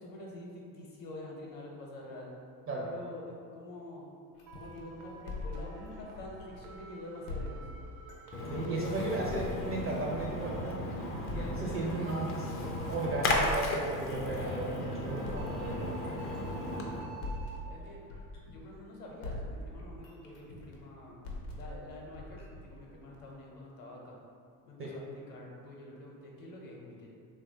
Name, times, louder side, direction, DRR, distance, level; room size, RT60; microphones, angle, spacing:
voice 1, 0.0-2.3 2.8-4.1 4.5-7.6 16.6-18.0 18.5-21.1 21.5-24.2 24.7-27.1, left 1 dB, 45° left, -2 dB, 0.8 m, -47 dB
sound 1, 4.4-6.8 7.3-10.8 11.3-14.8 15.2-18.9 19.2-23.3, left 2 dB, 80° left, 0.7 m, -43 dB
sound 2, 4.5-17.6, right 4 dB, 75° right, 0.6 m, -51 dB
Splash splatter, 8.3-17.0, left 2 dB, 30° left, 0.4 m, -35 dB
voice 2, 8.5-10.8 11.3-15.9 24.8-24.9, right 2 dB, 30° right, -3 dB, 0.4 m, -35 dB
3.0 x 2.3 x 2.7 m, 2.3 s
hypercardioid pair, 70°, 47 cm